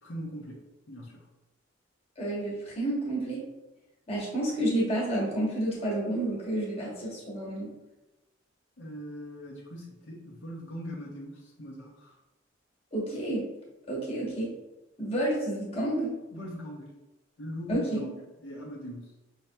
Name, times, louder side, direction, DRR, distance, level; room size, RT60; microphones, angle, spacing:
voice 1, 0.0-0.6 0.9-1.2 8.8-12.1 16.3-16.9 17.4-19.1, equal, 70° left, -3 dB, 0.7 m, -40 dB
voice 2, 2.2-3.4 4.1-7.7 12.9-13.5 13.9-14.6 15.0-16.1 17.7-18.0, right 1 dB, 30° left, -4 dB, 1.1 m, -30 dB
5.4 x 2.8 x 2.2 m, 1.0 s
head